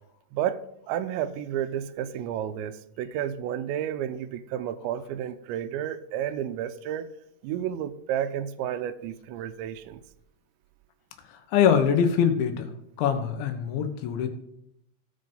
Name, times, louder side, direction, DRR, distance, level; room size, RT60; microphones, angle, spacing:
voice 1, 0.3-7.1 7.4-10.0, right 10 dB, 85° right, 12 dB, 2.9 m, -31 dB
voice 2, 11.3-12.7 13.0-14.3, left 8 dB, 85° left, 7 dB, 3.6 m, -23 dB
16.5 x 5.6 x 5.5 m, 0.77 s
omnidirectional pair, 5.2 m